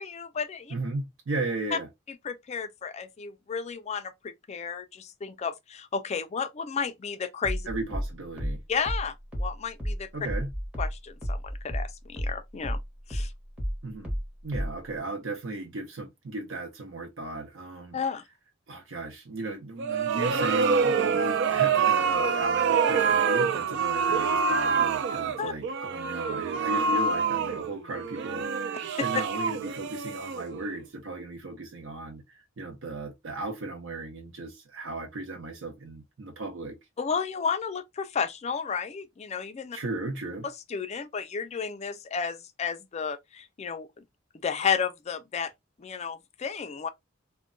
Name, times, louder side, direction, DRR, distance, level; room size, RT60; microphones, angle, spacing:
voice 1, 0.0-0.7 2.2-7.7 8.7-10.1 10.8-12.8 13.1-13.3 17.9-18.2 25.4-25.5 29.0-29.1 37.0-39.8 40.7-44.0 44.4-45.5 45.8-46.9, left 6 dB, 35° left, 0.4 m, -32 dB
voice 2, 0.7-1.9 7.7-8.6 10.1-10.5 13.8-14.1 14.4-18.0 18.7-36.8 39.7-40.5, right 2 dB, 90° right, 0.7 m, -36 dB
sound 1, 7.4-12.4 12.6-14.9, equal, 5° right, 0.9 m, -31 dB
sound 2, 19.8-30.8, right 5 dB, 65° right, 0.3 m, -26 dB
2.2 x 2.1 x 3.7 m
head